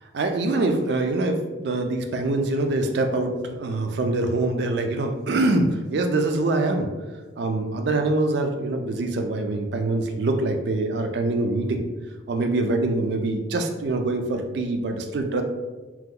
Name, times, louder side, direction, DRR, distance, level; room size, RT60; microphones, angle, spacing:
voice 1, 0.1-6.9 7.4-11.8 12.3-15.4, right 2 dB, 60° right, 5 dB, 0.3 m, -24 dB
2.9 x 2.1 x 3.6 m, 1.2 s
head